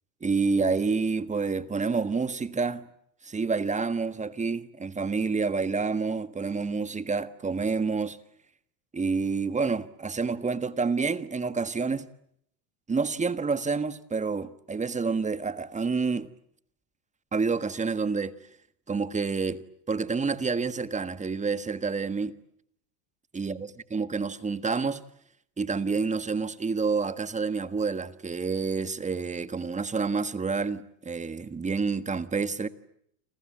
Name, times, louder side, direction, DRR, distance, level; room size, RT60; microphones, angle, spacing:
voice 1, 0.2-2.9 3.2-8.2 8.9-12.1 12.9-16.3 17.3-18.3 18.9-22.4 23.3-25.0 25.6-32.7, right 4 dB, 15° right, 1.5 m, -28 dB
29.5 x 26.5 x 7.6 m
supercardioid pair, 120°, 49 cm